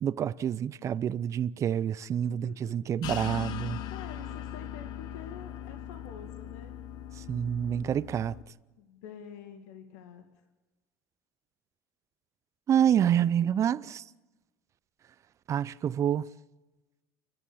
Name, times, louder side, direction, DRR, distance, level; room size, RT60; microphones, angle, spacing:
voice 1, 0.0-3.8 7.2-8.4 12.7-14.0 15.5-16.3, right 9 dB, 40° right, 0.6 m, -27 dB
voice 2, 2.2-2.9 3.9-6.7 8.8-10.4, left 7 dB, 80° left, 1.9 m, -47 dB
sound 1, 3.0-8.4, left 10 dB, 60° left, 1.2 m, -40 dB
29.5 x 11.0 x 8.5 m
supercardioid pair, 90°, 8 cm